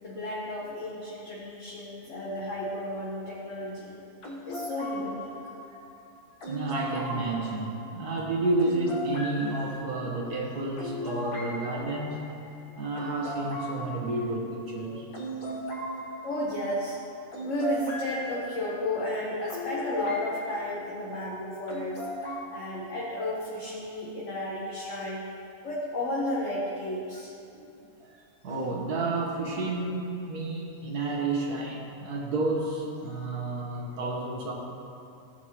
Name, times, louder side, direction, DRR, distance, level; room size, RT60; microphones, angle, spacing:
voice 1, 0.0-4.0 4.4-5.3 16.2-17.0 17.4-25.2 25.6-27.3, left 1 dB, 55° left, -6 dB, 1.5 m, -33 dB
sound 1, 4.2-20.6 21.7-22.4, equal, 80° left, 1.9 m, -38 dB
voice 2, 6.5-12.2 12.8-15.1 15.4-15.5 27.5-27.7 28.0-34.5, right 2 dB, 80° right, -2 dB, 1.8 m, -31 dB
14.5 x 8.0 x 3.0 m, 2.7 s
omnidirectional pair, 1.6 m